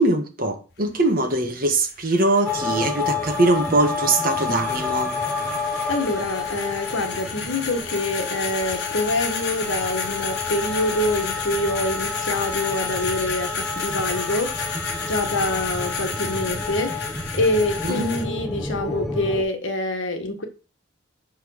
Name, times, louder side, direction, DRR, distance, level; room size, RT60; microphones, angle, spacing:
voice 1, 0.0-5.1 17.9-18.1, right 2 dB, 45° right, 4 dB, 1.6 m, -22 dB
sound 1, 0.7-18.2, left 5 dB, 55° left, 1.7 m, -32 dB
sound 2, 2.4-19.4, left 4 dB, ahead, 1.1 m, -30 dB
voice 2, 5.9-17.1 17.3-20.4, left 2 dB, 70° left, 5 dB, 1.6 m, -26 dB
5.8 x 5.6 x 6.4 m, 0.34 s
head